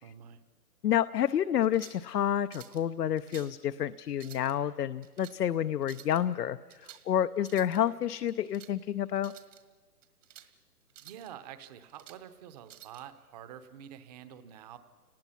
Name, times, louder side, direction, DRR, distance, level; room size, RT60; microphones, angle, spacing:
voice 1, 0.0-0.4 11.0-14.8, right 10 dB, 25° right, 11 dB, 0.9 m, -47 dB
voice 2, 0.8-9.3, left 10 dB, 85° left, 12 dB, 0.7 m, -29 dB
sound 1, 1.6-2.1 2.5-2.8 3.2-3.6 4.1-4.5 5.0-5.4 5.8-6.2 6.7-7.1 7.4-7.8 8.3-8.7 9.2-9.6 10.0-10.5 10.9-11.3 11.7-12.2 12.7-13.0, right 11 dB, 55° right, 1.9 m, -52 dB
29.0 x 19.5 x 5.7 m, 1.4 s
hypercardioid pair, 145°, 46 cm